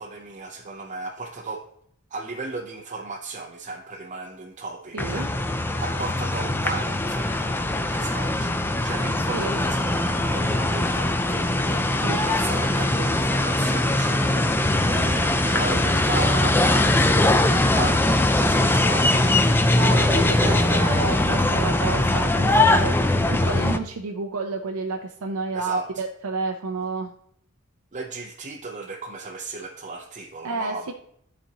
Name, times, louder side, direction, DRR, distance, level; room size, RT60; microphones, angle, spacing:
voice 1, 0.0-1.6 2.1-7.5 7.8-19.4 20.2-20.7 25.5-26.0 27.9-30.9, right 3 dB, 35° right, -1 dB, 0.6 m, -35 dB
voice 2, 4.9-5.3 9.3-9.6 12.0-12.3 19.8-27.1 30.4-30.9, right 3 dB, 85° right, 3 dB, 0.6 m, -30 dB
sound 1, 5.0-23.8, left 1 dB, 10° left, 0.3 m, -21 dB
12.0 x 4.2 x 2.9 m, 0.67 s
head